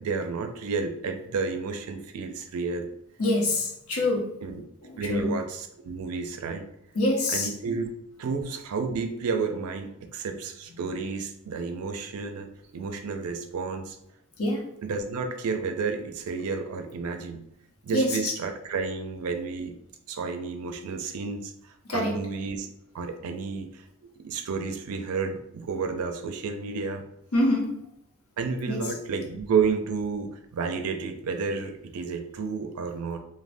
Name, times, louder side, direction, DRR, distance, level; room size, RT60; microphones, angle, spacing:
voice 1, 0.0-2.9 4.4-4.6 5.0-6.6 7.3-14.0 14.8-17.4 17.8-19.7 20.1-22.7 22.9-27.0 28.4-33.2, right 5 dB, 80° right, 6 dB, 0.4 m, -31 dB
voice 2, 3.2-4.2 5.1-5.3 6.9-7.5 14.4-14.6 17.9-18.3 21.9-22.2 27.3-27.8 28.7-28.8, left 1 dB, 80° left, 0 dB, 0.8 m, -25 dB
2.5 x 2.1 x 3.3 m, 0.77 s
head